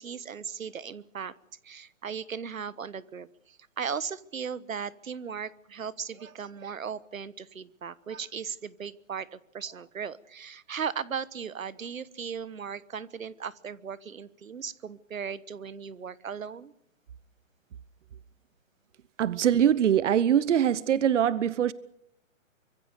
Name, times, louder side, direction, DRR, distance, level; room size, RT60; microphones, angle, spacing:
voice 1, 0.0-1.3 1.6-16.7, right 7 dB, 90° right, 1.3 m, -37 dB
voice 2, 19.2-21.7, right 9 dB, 65° right, 1.0 m, -23 dB
25.0 x 23.0 x 6.8 m
hypercardioid pair, 145°, 39 cm